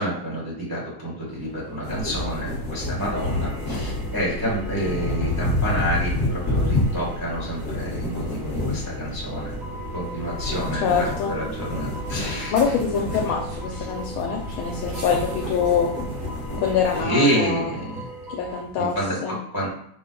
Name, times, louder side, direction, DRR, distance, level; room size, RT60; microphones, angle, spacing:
voice 1, 0.0-9.6 9.9-12.7 13.8-13.9 16.9-18.1 18.7-19.7, right 1 dB, 15° right, -7 dB, 0.9 m, -28 dB
sound 1, 1.3-19.1, right 1 dB, 85° right, 2.7 m, -40 dB
sound 2, 1.8-17.0, left 2 dB, 45° left, 1.4 m, -29 dB
sound 3, 3.1-18.6, right 1 dB, 45° right, 0.8 m, -42 dB
voice 2, 10.8-11.3 12.5-15.9 16.6-17.7 18.3-19.0 19.2-19.4, left 6 dB, 80° left, 2 dB, 1.5 m, -24 dB
4.9 x 2.2 x 3.8 m, 0.69 s
omnidirectional pair, 2.3 m